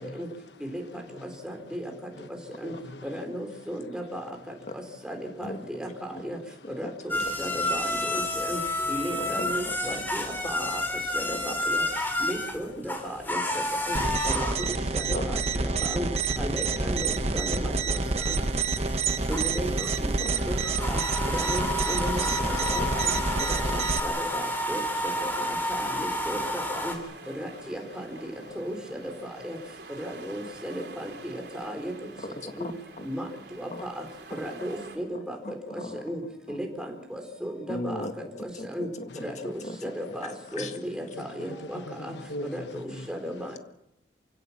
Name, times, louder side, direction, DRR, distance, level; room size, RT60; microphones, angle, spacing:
voice 1, 0.0-3.2 3.6-3.7 4.1-4.2 4.5-4.6 5.2-5.4 6.2-6.7 11.8-12.1 13.1-13.8 14.1-14.2 14.8-15.0 15.6-16.0 16.5-16.7 17.1-17.3 18.1-19.3 24.6-26.3 27.4-29.3 39.1-39.3 39.8-39.9 40.4-40.7 41.2-43.1 43.5-43.6, left 1 dB, 85° left, 1.2 m, -47 dB
voice 2, 1.2-1.9 2.6-2.7 3.0-5.9 6.2-6.4 6.8-8.6 8.9-10.8 11.1-11.8 12.2-13.4 13.8-14.0 14.2-14.7 14.9-16.1 16.4-18.0 18.3-18.4 19.3-20.1 20.5-21.0 21.3-22.3 22.7-23.1 23.5-23.8 24.0-24.8 25.2-25.3 25.7-27.0 27.4-28.2 28.6-29.1 29.4-29.6 30.0-31.9 32.6-32.7 33.0-33.3 33.6-34.0 34.3-36.2 36.5-38.0 38.6-38.9 39.2-42.1 42.5-43.6, equal, 5° right, 4.1 m, -35 dB
voice 3, 6.6-6.9 7.2-7.4 8.1-8.2 9.1-10.0 10.6-10.7 15.1-15.4 20.2-20.4 21.9-22.9 23.6-23.7 32.2-33.1 33.7-33.9 35.4-36.0 36.5-36.6 37.7-40.8, left 1 dB, 40° left, 2.0 m, -39 dB
sound 1, 7.1-26.9, left 1 dB, 10° left, 3.5 m, -31 dB
sound 2, 13.9-24.0, right 3 dB, 35° right, 1.1 m, -28 dB
sound 3, 19.7-35.0, right 3 dB, 75° right, 3.5 m, -47 dB
28.0 x 16.5 x 7.4 m
head